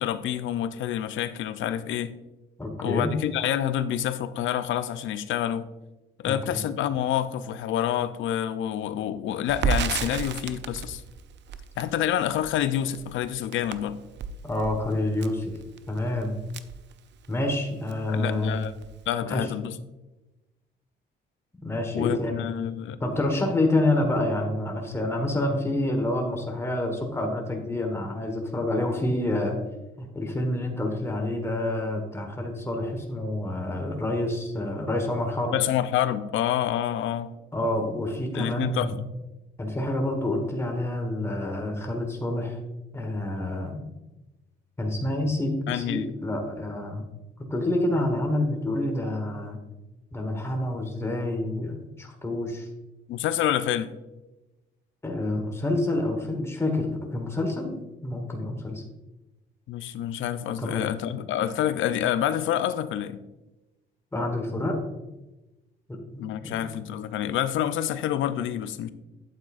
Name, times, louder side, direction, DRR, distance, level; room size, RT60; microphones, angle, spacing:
voice 1, 0.0-2.1 2.8-5.7 6.2-11.0 11.8-14.0 18.1-18.7 19.1-19.8 21.9-23.0 35.5-37.3 38.3-38.9 45.7-46.1 53.1-53.9 59.7-63.2 66.2-68.9, left 10 dB, 80° left, 0.5 m, -27 dB
voice 2, 2.6-3.2 6.2-6.6 14.4-15.5 15.9-16.4 17.3-18.6 19.2-19.5 21.6-22.5 23.0-29.6 30.0-35.5 37.5-39.0 39.6-42.6 42.9-43.8 44.8-47.1 47.5-49.6 50.1-52.7 55.0-57.7 58.0-58.8 60.6-60.8 64.1-64.8 65.9-66.7, left 1 dB, 15° left, 1.3 m, -28 dB
Crackle, 9.5-17.6 17.9-18.0 18.3-19.1, right 6 dB, 60° right, 0.5 m, -33 dB
8.8 x 7.7 x 2.5 m
cardioid pair, 90°, 20 cm